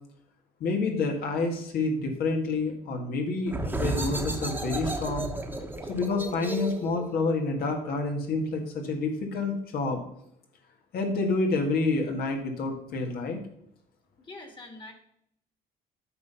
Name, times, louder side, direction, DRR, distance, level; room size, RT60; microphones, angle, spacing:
voice 1, 0.6-5.3 5.9-10.0 10.9-13.4, left 3 dB, 65° left, 3 dB, 1.8 m, -28 dB
sound 1, 3.5-8.9, right 2 dB, 10° right, 1.3 m, -34 dB
voice 2, 14.2-14.9, left 2 dB, 30° left, 5 dB, 2.0 m, -44 dB
9.3 x 5.6 x 5.7 m, 0.71 s
cardioid pair, 110°, 17 cm